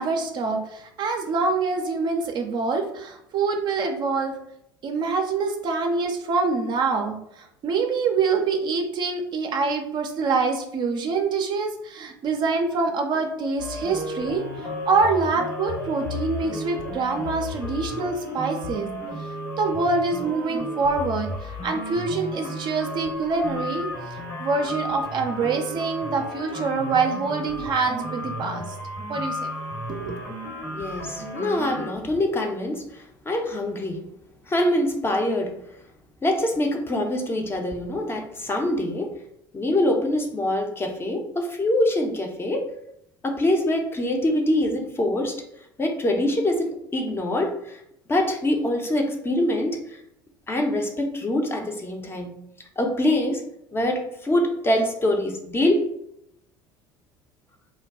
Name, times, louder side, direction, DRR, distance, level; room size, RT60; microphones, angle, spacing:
voice 1, 0.0-4.4 4.8-14.4 14.8-18.9 19.6-28.7 29.1-29.5 29.9-30.2, right 4 dB, 35° right, 4 dB, 0.4 m, -25 dB
sound 1, 13.6-31.9, left 1 dB, 75° left, 1.2 m, -33 dB
voice 2, 30.7-34.0 34.5-35.5 36.2-39.1 39.5-42.7 43.2-45.4 45.8-47.8 48.1-50.0 50.5-52.3 52.8-53.4 53.7-55.9, left 1 dB, 20° left, 2 dB, 0.5 m, -24 dB
2.2 x 2.2 x 3.4 m, 0.78 s
figure-of-eight pair, 65°, 13 cm